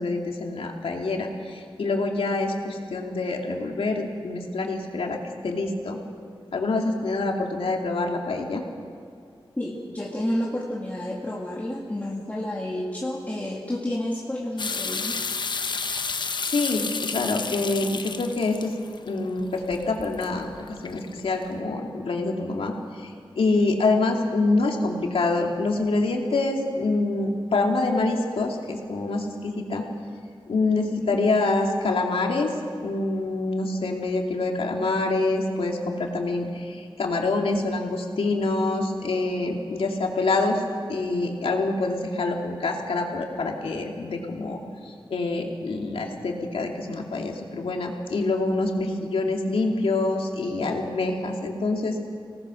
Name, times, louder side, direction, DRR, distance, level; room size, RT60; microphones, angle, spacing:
voice 1, 0.0-6.0 6.5-8.7 16.5-18.7 19.1-20.5 20.8-29.8 30.5-32.5 32.8-40.6 40.9-44.6 44.8-52.0, left 3 dB, 85° left, 1 dB, 2.5 m, -26 dB
voice 2, 9.6-15.4 31.0-31.2, left 1 dB, 15° left, -3 dB, 2.0 m, -30 dB
sound 1, 14.6-21.4, left 4 dB, 55° left, 0.9 m, -32 dB
25.0 x 18.5 x 6.3 m, 2.4 s
wide cardioid pair, 130°, 9 cm